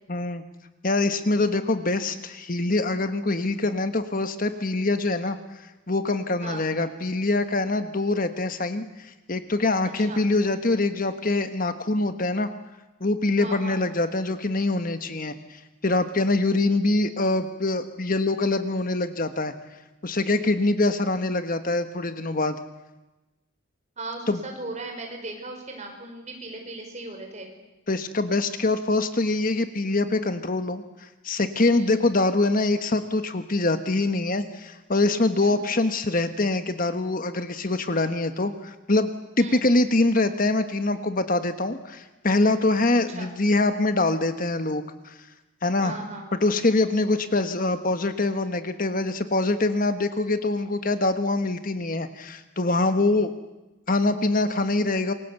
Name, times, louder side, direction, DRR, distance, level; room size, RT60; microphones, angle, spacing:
voice 1, 0.1-0.4 0.8-12.5 13.0-19.5 20.0-22.6 24.3-24.4 27.9-39.1 39.4-45.2 45.6-46.0 46.3-53.3 53.9-55.1, left 2 dB, 40° left, 9 dB, 1.3 m, -24 dB
voice 2, 9.8-10.2 13.4-13.8 24.0-27.5 31.8-31.9 35.4-35.6 39.4-39.6 42.9-43.4 45.8-46.3, right 2 dB, 35° right, 3 dB, 5.5 m, -38 dB
27.5 x 22.5 x 8.2 m, 1.1 s
head